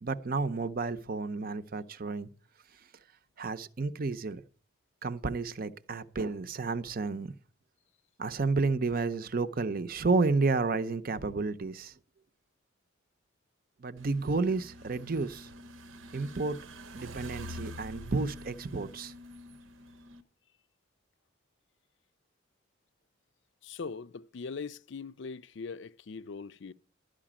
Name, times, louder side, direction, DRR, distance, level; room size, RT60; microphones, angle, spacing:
voice 1, 0.0-2.3 3.4-4.4 5.0-7.3 8.2-11.9 13.8-15.5 16.1-16.6 16.9-19.1, right 3 dB, 45° right, 0.6 m, -31 dB
sound 1, 14.0-20.2, equal, 80° right, 0.9 m, -46 dB
voice 2, 23.6-26.7, left 5 dB, 60° left, 0.5 m, -41 dB
12.0 x 5.0 x 8.7 m
head